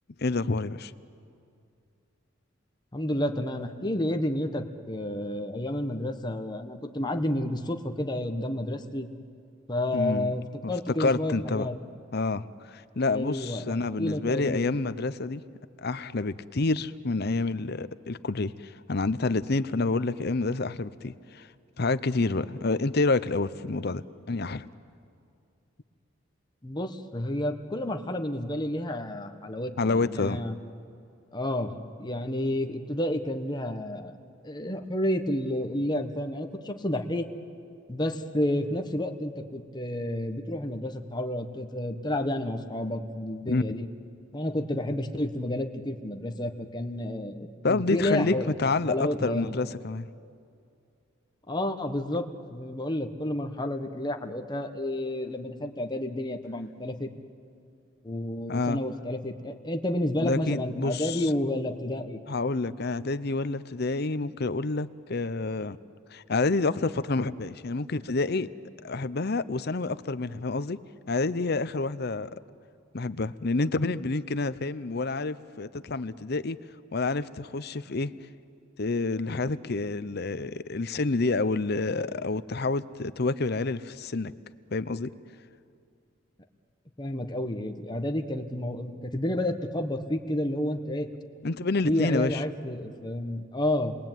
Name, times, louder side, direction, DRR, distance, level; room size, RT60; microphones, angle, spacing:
voice 1, 0.2-0.9 9.9-10.4 10.6-10.7 11.0-11.7 12.1-15.4 15.8-21.5 21.8-24.7 29.8-30.5 43.5-43.6 47.6-50.1 58.5-58.8 60.2-61.3 62.3-65.8 66.1-68.5 68.8-70.8 71.1-72.4 72.9-76.6 76.9-78.1 78.8-84.3 84.7-85.1 91.4-92.4, left 3 dB, 55° left, 14 dB, 0.8 m, -28 dB
voice 2, 2.9-9.1 9.7-11.7 13.1-14.7 26.6-30.6 31.3-34.2 34.4-37.3 37.9-43.9 44.3-48.5 48.9-49.6 51.5-57.1 58.0-62.2 87.0-91.1 91.8-94.0, left 1 dB, 20° left, 5 dB, 1.4 m, -30 dB
29.0 x 22.0 x 9.3 m, 2.4 s
head